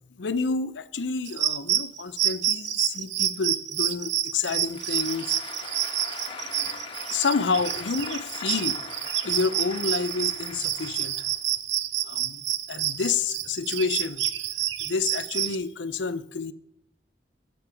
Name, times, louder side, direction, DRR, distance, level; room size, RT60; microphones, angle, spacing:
voice 1, 0.2-5.4 7.1-8.8 9.2-11.2 12.0-12.4 12.7-14.2 14.8-16.5, left 5 dB, 85° left, 14 dB, 0.6 m, -29 dB
sound 1, 1.3-15.6, right 11 dB, 85° right, 0.6 m, -28 dB
Applause, 4.5-11.6, left 4 dB, 30° left, 1.3 m, -41 dB
12.0 x 7.9 x 5.9 m, 0.77 s
head